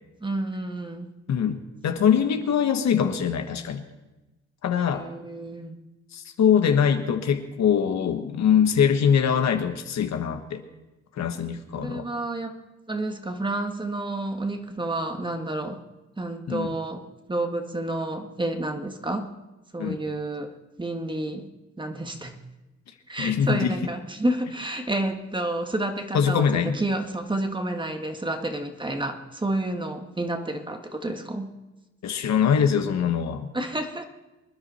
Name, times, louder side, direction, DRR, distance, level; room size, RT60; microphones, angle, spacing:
voice 1, 0.2-1.1 4.7-5.8 11.7-15.8 16.2-19.3 19.7-21.5 21.8-22.4 23.1-31.5 33.5-34.0, right 2 dB, 15° right, 6 dB, 1.6 m, -30 dB
voice 2, 1.3-3.8 4.6-5.1 6.1-10.6 11.2-12.1 16.5-16.7 19.8-20.0 23.2-23.7 26.1-26.7 32.0-33.5, left 8 dB, 65° left, 7 dB, 1.5 m, -23 dB
25.5 x 10.0 x 4.3 m, 1.1 s
cardioid pair, 90°, 30 cm